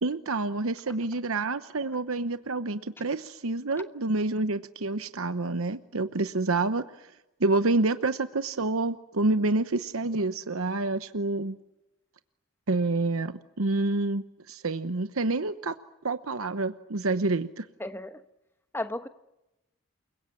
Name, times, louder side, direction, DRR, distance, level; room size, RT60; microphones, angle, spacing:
voice 1, 0.0-7.1 7.4-11.6 12.7-15.8 16.0-17.7, right 2 dB, 85° right, 1.0 m, -28 dB
voice 2, 17.8-18.2 18.7-19.1, left 1 dB, 10° left, 1.1 m, -34 dB
29.0 x 23.0 x 8.7 m
head